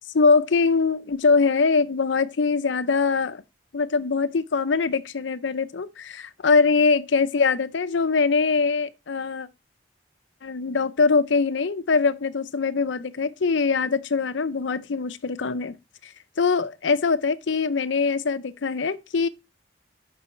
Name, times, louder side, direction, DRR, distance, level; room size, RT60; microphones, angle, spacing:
voice 1, 0.1-3.4 3.7-9.5 10.4-15.8 16.0-19.3, left 4 dB, 80° left, 0.6 m, -22 dB
7.0 x 5.4 x 4.3 m
head